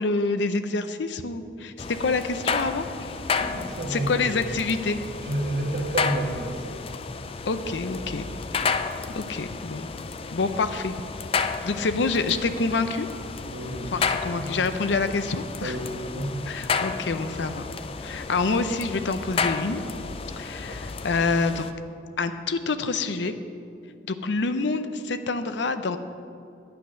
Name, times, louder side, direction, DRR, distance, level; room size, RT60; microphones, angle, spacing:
voice 1, 0.0-3.1 3.9-5.0 7.5-8.2 8.5-8.6 9.1-9.9 10.3-10.9 11.4-13.1 13.9-15.8 16.5-17.6 18.0-19.8 20.4-21.6 22.2-23.4 24.1-26.0, left 3 dB, 70° left, 10 dB, 0.6 m, -27 dB
sound 1, 1.8-21.7, left 5 dB, 30° left, 0.3 m, -32 dB
voice 2, 3.4-4.4 5.2-6.8 7.9-8.3 13.5-13.9 14.4-14.5 15.6-16.5 20.7-20.8, right 1 dB, 55° right, 0 dB, 1.5 m, -31 dB
9.6 x 8.4 x 6.3 m, 2.5 s
head